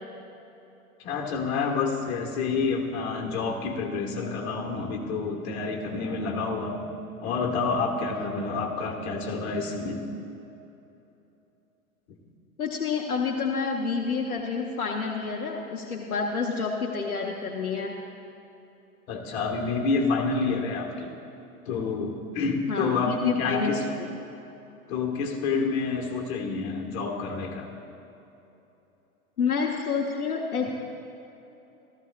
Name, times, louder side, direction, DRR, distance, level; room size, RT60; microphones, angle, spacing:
voice 1, 1.0-6.9 7.2-10.0 19.1-21.1 21.6-23.8 24.9-27.7, left 4 dB, 45° left, 1 dB, 1.6 m, -28 dB
voice 2, 12.6-18.0 22.7-24.1 29.4-30.7, left 5 dB, 75° left, 1 dB, 1.0 m, -29 dB
15.0 x 14.0 x 2.4 m, 3.0 s
figure-of-eight pair, 105°, 44 cm